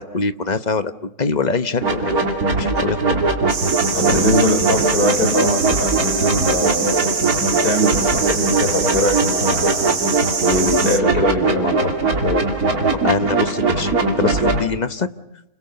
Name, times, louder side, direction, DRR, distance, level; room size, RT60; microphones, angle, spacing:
voice 1, 0.0-2.2 2.6-3.1 3.9-4.2 12.9-13.9 14.2-15.1, left 4 dB, 30° left, 10 dB, 0.9 m, -23 dB
sound 1, 1.8-14.6, right 3 dB, 55° right, 2.9 m, -20 dB
sound 2, 3.5-11.0, right 5 dB, 75° right, 2.6 m, -25 dB
voice 2, 3.9-7.1 7.5-12.5, left 1 dB, 55° left, 5 dB, 5.3 m, -22 dB
29.5 x 27.5 x 6.9 m, 0.83 s
omnidirectional pair, 1.9 m